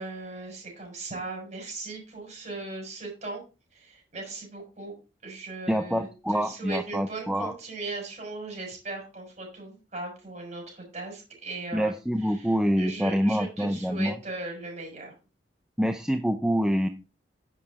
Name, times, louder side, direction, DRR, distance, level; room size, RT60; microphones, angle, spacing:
voice 1, 0.0-3.4 3.7-4.9 5.2-11.9 12.4-15.1, right 3 dB, 40° right, 1 dB, 6.3 m, -38 dB
voice 2, 5.7-7.5 11.7-14.2 15.8-16.9, equal, 5° right, 7 dB, 0.5 m, -26 dB
10.5 x 7.7 x 4.1 m, 0.31 s
head